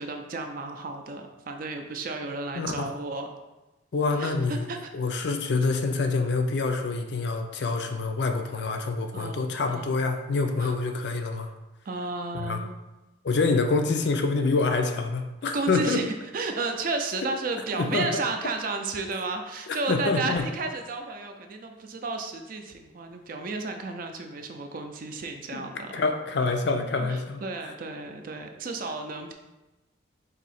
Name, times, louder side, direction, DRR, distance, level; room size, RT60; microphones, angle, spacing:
voice 1, 0.0-3.3 4.1-4.9 9.1-9.9 10.6-10.7 11.9-12.8 15.5-16.1 16.3-26.0 26.8-29.3, right 3 dB, 45° right, 5 dB, 0.4 m, -33 dB
voice 2, 2.2-3.0 3.9-4.6 4.9-11.5 12.3-12.6 13.2-16.0 17.7-18.0 19.9-20.4 25.5-25.6 25.9-27.7, left 3 dB, 60° left, 5 dB, 0.4 m, -26 dB
4.1 x 2.7 x 4.1 m, 1.0 s
head